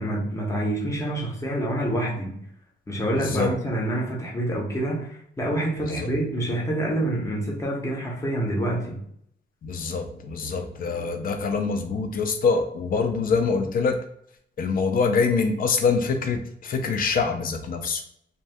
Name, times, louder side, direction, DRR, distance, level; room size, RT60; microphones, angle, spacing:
voice 1, 0.0-2.4 2.9-9.0, right 1 dB, 15° left, -3 dB, 0.7 m, -27 dB
voice 2, 3.1-3.5 5.8-6.1 9.6-14.0 14.6-18.0, left 5 dB, 50° left, 6 dB, 0.4 m, -25 dB
2.7 x 2.2 x 3.3 m, 0.70 s
wide cardioid pair, 180°, 19 cm